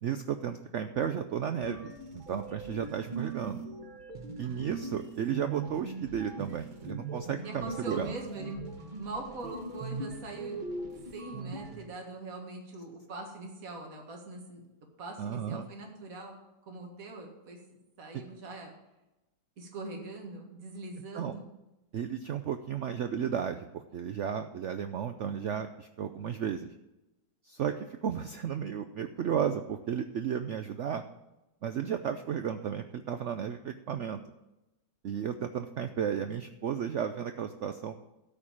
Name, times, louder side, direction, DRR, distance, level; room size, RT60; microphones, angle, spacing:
voice 1, 0.0-3.6 4.4-8.1 15.2-15.7 21.1-21.4 21.9-26.7 27.5-31.0 31.6-34.2 35.0-38.0, right 8 dB, 75° right, 8 dB, 0.6 m, -33 dB
sound 1, 1.6-11.9, right 4 dB, 30° right, 1.2 m, -41 dB
voice 2, 4.4-4.9 7.4-8.6 9.0-10.7 11.1-14.6 15.0-16.4 16.7-18.7 19.6-21.5, right 2 dB, 50° right, 1 dB, 2.2 m, -42 dB
13.0 x 4.7 x 8.6 m, 0.98 s
omnidirectional pair, 1.9 m